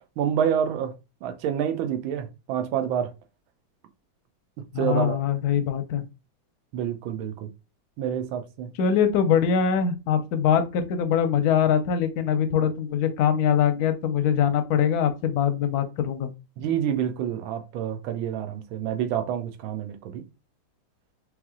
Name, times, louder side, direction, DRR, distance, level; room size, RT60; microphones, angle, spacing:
voice 1, 0.2-0.9 1.2-3.1 4.8-5.2 6.7-7.5 8.0-8.7 16.6-20.2, right 9 dB, 80° right, 1.5 m, -28 dB
voice 2, 4.7-6.0 8.8-16.3, left 8 dB, 65° left, 1.0 m, -23 dB
3.6 x 3.2 x 3.6 m
omnidirectional pair, 2.2 m